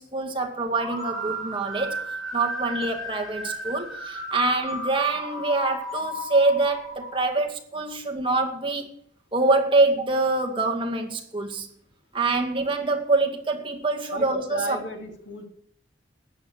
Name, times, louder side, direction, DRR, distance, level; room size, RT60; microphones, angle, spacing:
voice 1, 0.0-2.0 2.3-8.9 9.3-11.7 12.1-14.8, right 3 dB, 30° right, 2.1 m, -25 dB
sound 1, 0.8-7.2, equal, ahead, 4.2 m, -34 dB
voice 2, 14.1-15.5, equal, 90° left, 2.9 m, -34 dB
14.0 x 9.6 x 6.4 m
head